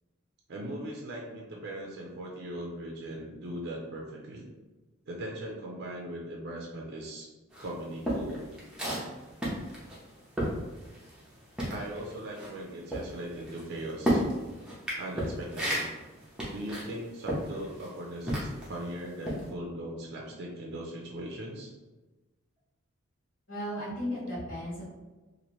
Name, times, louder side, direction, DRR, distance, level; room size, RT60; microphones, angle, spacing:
voice 1, 0.5-4.5 5.1-7.3 7.6-8.5 8.8-9.1 11.7-14.2 15.0-15.9 16.5-21.7, right 1 dB, 50° right, -1 dB, 0.5 m, -39 dB
sound 1, 7.5-11.3 11.5-18.8 19.2-19.5, equal, 5° right, 0.6 m, -33 dB
voice 2, 23.5-24.8, equal, 60° left, -12 dB, 1.4 m, -35 dB
2.8 x 2.5 x 3.0 m, 1.2 s
head